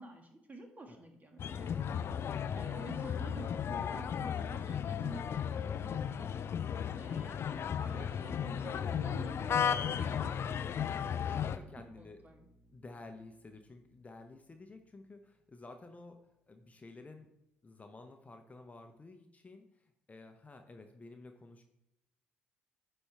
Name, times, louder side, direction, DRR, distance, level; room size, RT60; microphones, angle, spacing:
voice 1, 0.0-1.9 2.5-6.3 7.0-10.6 11.0-11.4 12.0-12.5, right 2 dB, 30° right, 3 dB, 1.6 m, -50 dB
sound 1, 1.4-11.6, left 8 dB, 50° left, 0.4 m, -35 dB
voice 2, 11.0-12.2 12.7-17.3 17.6-21.6, left 3 dB, 25° left, 5 dB, 0.8 m, -53 dB
Bowed string instrument, 11.4-16.5, left 1 dB, 15° right, 2.7 m, -62 dB
9.7 x 4.3 x 3.4 m, 0.89 s
hypercardioid pair, 55°, 6 cm